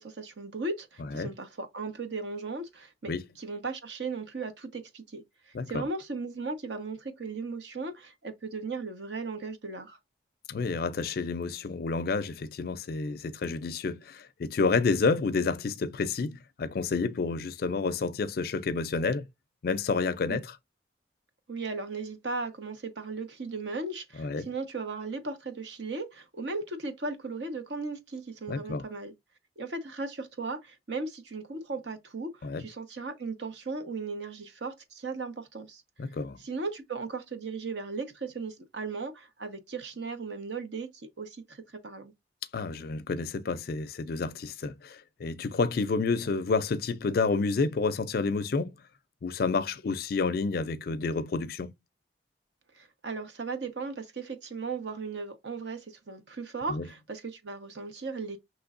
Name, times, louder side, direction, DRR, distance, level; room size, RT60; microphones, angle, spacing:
voice 1, 0.0-10.0 20.3-20.4 21.5-29.1 29.6-35.8 36.4-42.1 52.7-58.4, right 3 dB, 65° right, 0.9 m, -37 dB
voice 2, 5.5-5.9 10.5-19.3 19.6-20.6 24.2-24.5 28.5-28.8 32.4-32.6 36.0-36.4 42.5-48.8 49.2-51.7 56.7-56.9, left 4 dB, 55° left, 0.4 m, -29 dB
6.0 x 3.1 x 2.5 m
head